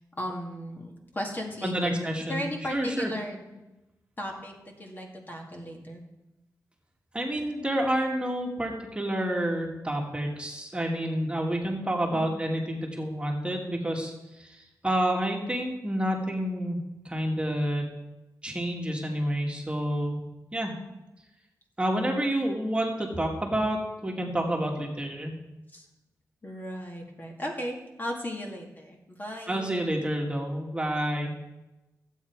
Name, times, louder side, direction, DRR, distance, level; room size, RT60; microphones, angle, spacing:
voice 1, 0.2-3.4 4.2-6.0 12.1-12.4 25.7-25.9 26.4-29.7, equal, 30° left, 0 dB, 2.1 m, -36 dB
voice 2, 1.6-2.4 2.7-3.1 7.1-16.8 17.0-17.8 18.4-20.2 20.5-20.7 21.8-25.3 29.5-31.4, right 1 dB, 15° right, 1 dB, 1.9 m, -29 dB
15.0 x 8.4 x 4.7 m, 1.0 s
cardioid pair, 85°, 6 cm